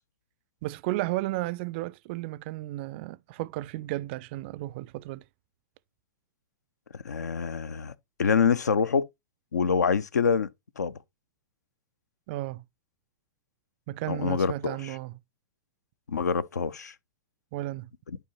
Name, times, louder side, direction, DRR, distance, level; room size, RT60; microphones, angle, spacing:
voice 1, 0.6-5.2 12.3-12.6 13.9-15.1 17.5-17.9, right 17 dB, 40° right, 0.3 m, -33 dB
voice 2, 6.9-7.9 8.2-9.1 9.5-10.5 10.8-10.9 14.1-14.9 16.1-16.9 18.1-18.2, left 6 dB, 70° left, 0.5 m, -26 dB
11.5 x 4.8 x 2.7 m
figure-of-eight pair, 100°, 10 cm